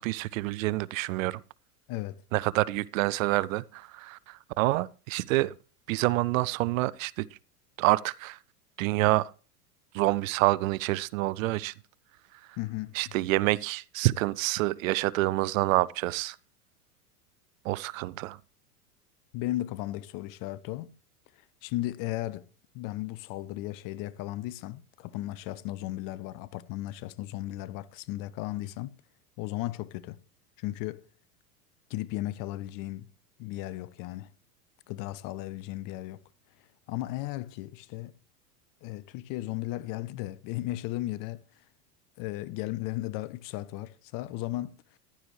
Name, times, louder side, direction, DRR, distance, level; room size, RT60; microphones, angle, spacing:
voice 1, 0.0-1.4 2.3-5.5 5.9-7.3 7.8-8.4 8.8-9.3 9.9-11.7 12.9-16.4 17.6-18.4, right 19 dB, 60° right, 0.6 m, -27 dB
voice 2, 1.9-2.2 12.6-12.9 19.3-20.9 21.6-22.5 22.7-28.9 29.4-30.2 30.6-31.0 31.9-33.1 33.4-34.3 34.9-36.2 36.9-38.1 38.8-41.4 42.2-44.8, left 16 dB, 45° left, 0.9 m, -35 dB
14.5 x 12.0 x 3.2 m
hypercardioid pair, 95°, 46 cm